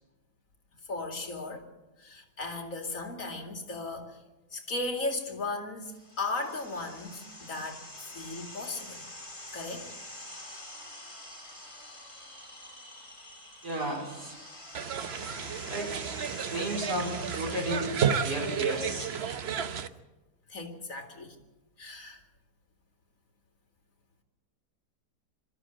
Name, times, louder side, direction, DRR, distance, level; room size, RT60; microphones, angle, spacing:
voice 1, 0.9-1.6 2.0-4.2 4.5-5.9 6.2-7.8 8.1-9.0 9.5-9.9 15.3-15.6 20.5-21.4 21.8-22.2, left 2 dB, 50° left, 4 dB, 2.7 m, -36 dB
sound 1, 5.9-19.7, left 1 dB, 15° left, 4.0 m, -47 dB
voice 2, 13.6-14.4 15.7-16.0 16.5-19.1, right 1 dB, 70° right, 0 dB, 4.7 m, -33 dB
sound 2, 14.8-19.9, right 7 dB, 50° right, 0.9 m, -32 dB
23.0 x 13.5 x 8.9 m, 1.1 s
omnidirectional pair, 1.8 m